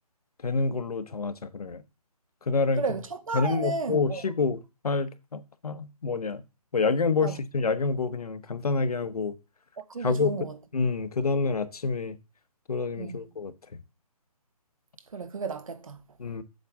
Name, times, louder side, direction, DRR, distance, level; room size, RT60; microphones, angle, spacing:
voice 1, 0.4-1.8 2.5-2.8 3.3-6.4 6.7-9.3 10.0-10.5 10.7-12.2 12.7-13.5 16.2-16.4, left 4 dB, 75° left, 1.1 m, -27 dB
voice 2, 2.8-4.2 7.2-7.3 9.9-10.5 13.0-13.3 15.1-16.0, right 4 dB, 60° right, 1.4 m, -33 dB
7.9 x 7.3 x 3.5 m
hypercardioid pair, 175°, 20 cm